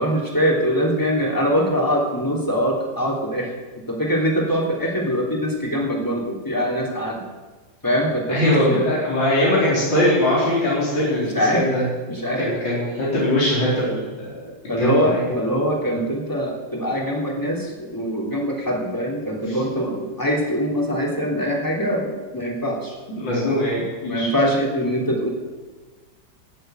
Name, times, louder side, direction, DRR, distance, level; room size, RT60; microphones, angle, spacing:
voice 1, 0.0-3.5 3.9-7.2 7.8-8.8 10.3-10.4 10.9-11.0 11.3-11.7 12.1-12.5 14.7-22.9 23.2-23.5 24.0-25.3, equal, 10° left, -1 dB, 3.0 m, -23 dB
voice 2, 8.3-11.8 12.4-14.4 14.6-15.2 19.5-19.6 23.1-24.3, left 1 dB, 80° left, -8 dB, 4.7 m, -21 dB
16.0 x 7.7 x 9.3 m, 1.3 s
omnidirectional pair, 2.0 m